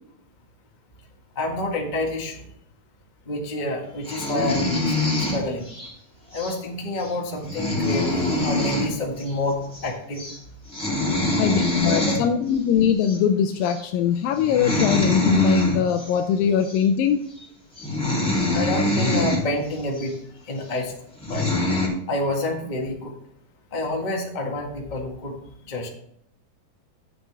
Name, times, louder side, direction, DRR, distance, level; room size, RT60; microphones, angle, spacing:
voice 1, 1.3-2.4 3.2-5.7 6.3-10.2 12.0-12.2 18.5-20.1 20.5-20.9 21.3-21.4 22.1-23.1 23.7-25.3 25.7-25.9, left 1 dB, 30° left, 0 dB, 0.9 m, -28 dB
sound 1, 4.0-5.9 6.3-6.6 7.0-7.1 7.4-8.9 9.2-9.3 9.6-9.9 10.2-10.4 10.7-12.2 13.0-13.2 13.6-13.8 14.4-16.1 16.6-16.8 17.4-17.5 17.8-19.4 20.0-20.1 20.8-20.9 21.2-21.9, left 2 dB, ahead, 2.6 m, -24 dB
voice 2, 11.4-17.3, left 8 dB, 85° left, 5 dB, 2.3 m, -22 dB
11.5 x 8.0 x 3.4 m, 0.74 s
omnidirectional pair, 3.9 m